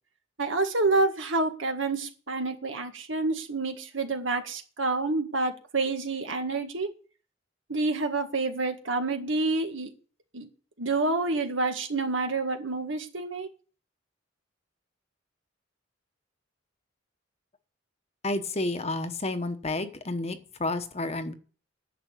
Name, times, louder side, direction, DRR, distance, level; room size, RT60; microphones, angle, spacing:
voice 1, 0.4-6.9 7.7-9.9 10.3-10.5 10.8-13.5, right 3 dB, 75° right, 6 dB, 1.8 m, -28 dB
voice 2, 18.2-21.3, left 2 dB, 35° left, 9 dB, 1.1 m, -30 dB
10.5 x 6.7 x 8.3 m, 0.39 s
head